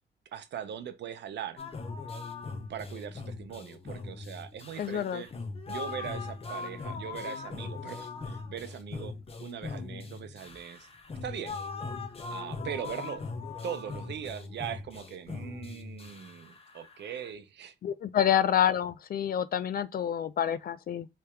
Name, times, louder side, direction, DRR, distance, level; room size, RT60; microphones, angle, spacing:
voice 1, 0.3-1.6 2.7-5.3 5.7-10.9 11.2-11.6 12.3-13.3 13.6-17.7 18.2-18.4, right 9 dB, 60° right, 0.7 m, -40 dB
sound 1, 1.6-17.3, left 4 dB, 30° left, 0.8 m, -40 dB
voice 2, 4.8-5.2 17.8-21.1, left 10 dB, 50° left, 0.4 m, -28 dB
3.4 x 2.9 x 3.1 m
cardioid pair, 90°, 20 cm